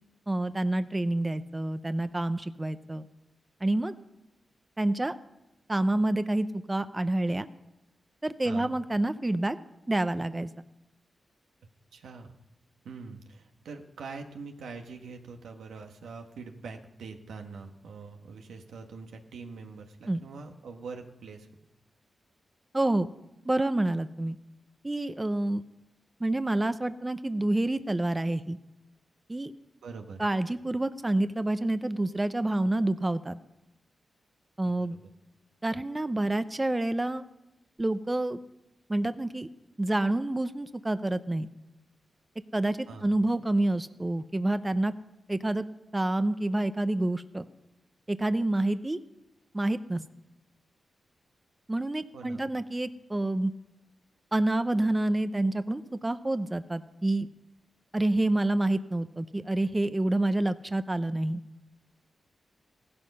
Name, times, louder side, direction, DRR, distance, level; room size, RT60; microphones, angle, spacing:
voice 1, 0.3-3.0 3.6-3.9 4.8-5.2 5.7-7.5 8.2-9.6 9.9-10.5 20.1-20.2 22.7-23.1 23.5-24.4 24.8-25.6 26.2-28.6 29.3-29.5 30.2-33.4 34.6-35.0 35.6-37.2 37.8-38.4 38.9-39.5 39.8-41.5 42.5-44.9 45.3-45.7 45.9-47.5 48.1-49.0 49.5-50.0 51.7-53.5 54.3-57.3 57.9-61.4, right 1 dB, 25° right, 11 dB, 0.7 m, -28 dB
voice 2, 11.9-12.3 12.8-21.5 29.8-30.2 34.6-35.1 42.9-43.1 52.1-52.4, right 4 dB, 90° right, 4 dB, 1.3 m, -44 dB
15.5 x 12.5 x 5.5 m, 0.96 s
cardioid pair, 50°, 0 cm